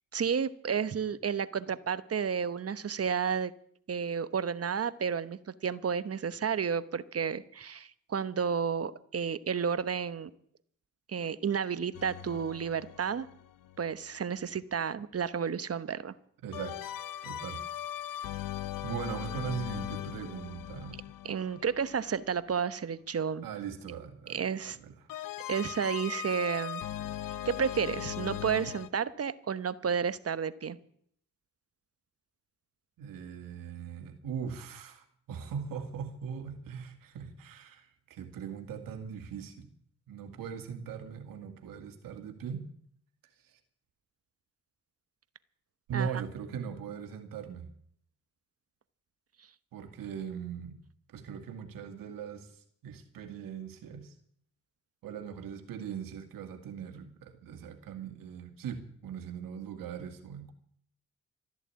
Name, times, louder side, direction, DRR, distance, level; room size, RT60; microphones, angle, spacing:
voice 1, 0.1-3.5 3.9-10.3 11.1-13.3 13.8-16.1 21.2-23.5 24.3-24.8 25.5-26.8 27.4-30.8 45.9-46.1, right 7 dB, 45° right, 14 dB, 1.1 m, -31 dB
sound 1, 11.9-13.9 16.5-22.5 25.1-28.9, left 11 dB, 80° left, 0.8 m, -39 dB
voice 2, 16.4-17.0 17.2-17.6 18.0-18.5 18.8-21.0 23.4-24.9 33.0-39.7 40.1-42.6 43.4-43.6 45.9-47.7 49.7-50.8 51.1-54.1 55.0-60.5, right 7 dB, 85° right, 5 dB, 2.3 m, -40 dB
14.0 x 11.0 x 8.6 m, 0.64 s
supercardioid pair, 55°, 33 cm